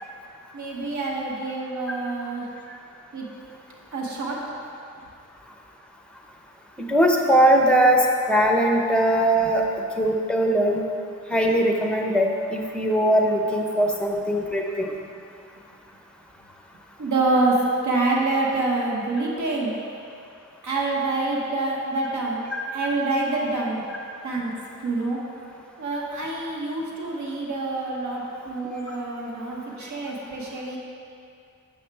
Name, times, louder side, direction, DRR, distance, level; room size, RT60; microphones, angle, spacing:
voice 1, 0.5-2.4 3.1-3.3 3.9-4.4 17.0-17.5 17.8-19.7 20.6-22.4 22.7-23.8 24.2-24.5 24.8-25.2 25.8-30.8, right 3 dB, 70° right, -3 dB, 1.0 m, -26 dB
voice 2, 6.9-10.8 11.3-14.9 29.8-29.9, right 1 dB, 5° left, 1 dB, 0.8 m, -20 dB
7.1 x 5.7 x 3.4 m, 2.5 s
cardioid pair, 65°, 31 cm